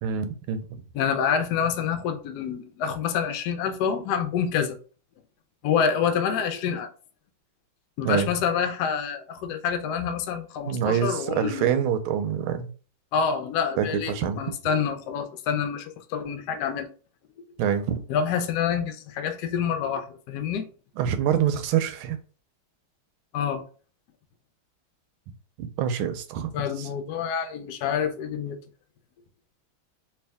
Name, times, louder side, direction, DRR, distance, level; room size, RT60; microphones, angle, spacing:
voice 1, 0.0-0.8 8.0-8.3 10.7-12.7 13.8-14.4 17.6-18.0 21.0-22.2 25.6-26.5 26.8-26.9, right 9 dB, 90° right, 1.4 m, -26 dB
voice 2, 0.9-4.8 5.6-6.9 8.0-11.8 13.1-16.9 18.1-20.7 23.3-23.6 26.5-28.6, left 7 dB, 70° left, 1.0 m, -27 dB
3.5 x 2.7 x 3.4 m
omnidirectional pair, 2.2 m